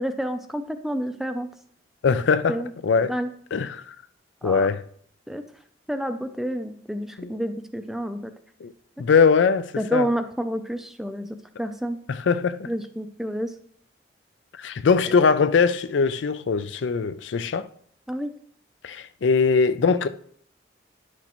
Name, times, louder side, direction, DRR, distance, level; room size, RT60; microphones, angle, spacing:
voice 1, 0.0-1.5 2.5-2.7 3.1-3.3 4.4-4.7 5.3-5.4 5.9-8.3 9.8-11.3 11.6-12.0 12.7-13.5 18.1-18.3, equal, ahead, 0.4 m, -29 dB
voice 2, 2.0-3.2 3.5-4.0 4.4-4.8 7.2-7.3 8.6-8.7 9.0-10.1 12.1-12.7 14.6-17.7 18.8-20.1, left 5 dB, 75° left, 0.4 m, -21 dB
10.0 x 6.1 x 3.0 m
head